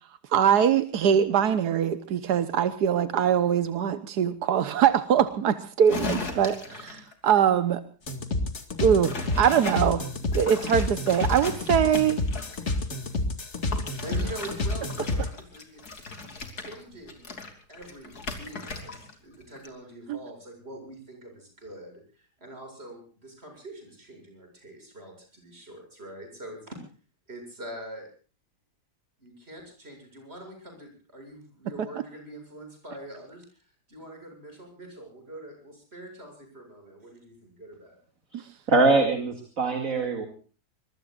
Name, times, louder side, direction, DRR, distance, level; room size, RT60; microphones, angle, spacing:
voice 1, 0.3-7.8 8.8-10.0 10.3-12.2 20.1-20.2 38.3-38.4, right 8 dB, 90° right, 12 dB, 1.6 m, -23 dB
sound 1, 5.9-7.1 9.0-9.8 10.3-12.7 13.7-19.2 19.4-19.7, left 3 dB, 75° left, 3.5 m, -37 dB
sound 2, 8.1-15.3, left 2 dB, 45° left, 2.5 m, -29 dB
voice 2, 14.0-17.3 17.7-26.8 27.3-28.1 29.2-38.0, right 1 dB, 40° right, 4 dB, 7.8 m, -44 dB
voice 3, 38.7-40.3, right 3 dB, 55° right, 5 dB, 2.9 m, -23 dB
25.0 x 22.0 x 2.5 m, 0.39 s
omnidirectional pair, 1.7 m